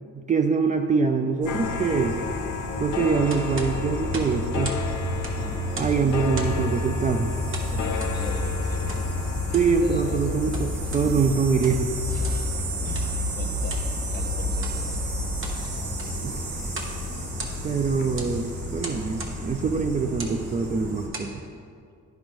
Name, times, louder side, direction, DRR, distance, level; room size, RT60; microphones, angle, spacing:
voice 1, 0.2-2.2 2.8-4.8 5.8-7.3 9.4-11.9 16.2-16.4 17.6-21.4, right 5 dB, 25° right, 4 dB, 0.4 m, -24 dB
sound 1, 1.4-21.1, left 1 dB, 75° right, 1.3 m, -30 dB
sound 2, 1.5-16.6 16.9-18.3 18.6-18.7, left 6 dB, 80° left, 0.6 m, -36 dB
sound 3, 3.3-4.9 5.1-6.0 6.3-6.7 7.5-8.2 8.9-9.1 9.4-9.8 10.3-11.1 11.5-11.9 12.2-12.5 12.9-13.1 13.7-13.9 14.5-14.8 15.2-15.6 15.9-16.2 16.7-17.0 17.2-17.8 18.2-18.4 18.8-19.4 20.1-20.4 20.9-21.3, right 2 dB, 45° right, 1.1 m, -37 dB
voice 2, 5.3-6.1 7.7-9.1 9.5-10.2 10.8-11.1 12.1-13.8 14.1-15.0, left 3 dB, 30° left, 3 dB, 0.9 m, -40 dB
9.6 x 5.2 x 3.0 m, 2.3 s
cardioid pair, 90°, 30 cm